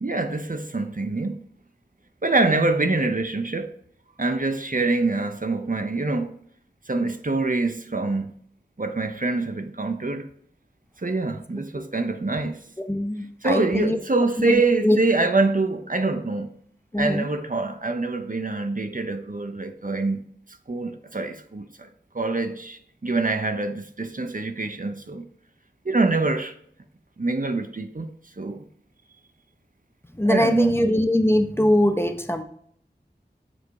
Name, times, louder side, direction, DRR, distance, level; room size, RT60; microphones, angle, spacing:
voice 1, 0.0-1.4 2.2-3.7 4.2-6.4 6.9-8.4 8.8-10.2 11.0-12.6 13.4-16.5 17.0-20.3 20.7-21.9 22.1-25.2 25.8-26.5 27.2-28.1 28.4-28.6 30.2-30.9, right 3 dB, 50° right, 0.8 m, -25 dB
voice 2, 12.9-14.0 14.4-15.0 16.9-17.3 30.2-32.4, left 1 dB, 15° left, 0.8 m, -22 dB
7.2 x 4.1 x 4.7 m
wide cardioid pair, 40°, 18 cm